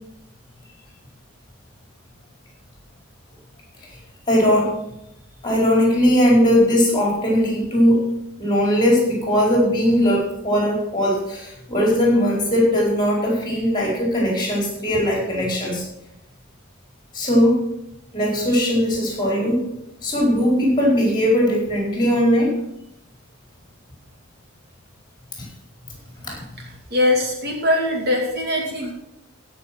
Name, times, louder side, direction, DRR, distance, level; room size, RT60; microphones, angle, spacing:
voice 1, 4.3-4.7 5.4-8.0 8.4-15.8 17.1-17.6 18.1-19.6 20.0-22.6 25.4-25.5 26.2-26.3, equal, 20° left, -2 dB, 4.7 m, -19 dB
voice 2, 26.9-28.9, left 1 dB, 50° right, 1 dB, 2.4 m, -21 dB
16.0 x 6.5 x 6.1 m, 0.82 s
head